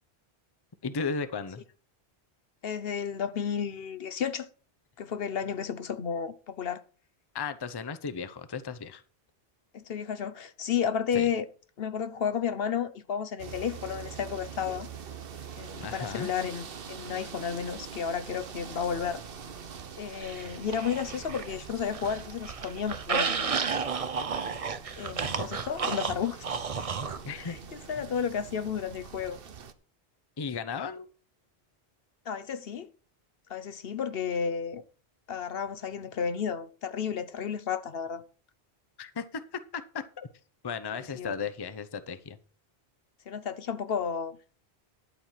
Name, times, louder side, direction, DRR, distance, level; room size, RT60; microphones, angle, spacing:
voice 1, 0.8-1.6 7.3-9.0 11.1-11.3 15.8-16.3 27.3-27.6 30.4-31.1 39.0-40.3 40.6-42.4, left 5 dB, 25° left, 0.6 m, -35 dB
voice 2, 2.6-4.5 5.0-6.8 9.7-11.4 11.8-14.9 15.6-19.2 20.0-23.6 25.0-26.6 27.4-29.4 32.3-32.9 33.5-34.8 35.3-38.2 41.0-41.3 43.3-44.4, left 7 dB, 65° left, 1.0 m, -32 dB
sound 1, 13.4-29.7, right 6 dB, 60° right, 1.1 m, -44 dB
sound 2, 20.2-21.5 21.9-27.2, right 5 dB, 40° right, 0.7 m, -32 dB
11.5 x 4.4 x 7.4 m
omnidirectional pair, 1.1 m